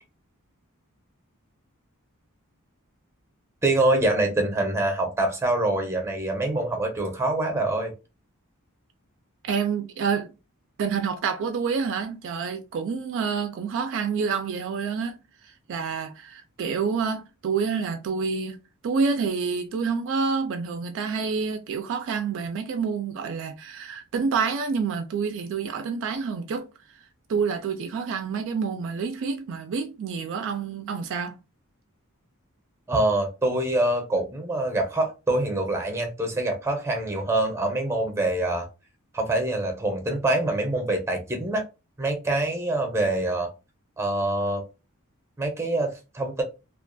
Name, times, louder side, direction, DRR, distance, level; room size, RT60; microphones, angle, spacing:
voice 1, 3.6-7.9 32.9-38.7 39.1-41.6 42.0-43.5 44.0-44.6 45.4-46.4, right 2 dB, 10° right, 0.6 m, -25 dB
voice 2, 9.4-10.3 10.8-15.2 15.7-18.6 18.8-26.7 27.3-31.4, right 5 dB, 60° right, 0.3 m, -28 dB
2.4 x 2.2 x 2.5 m
head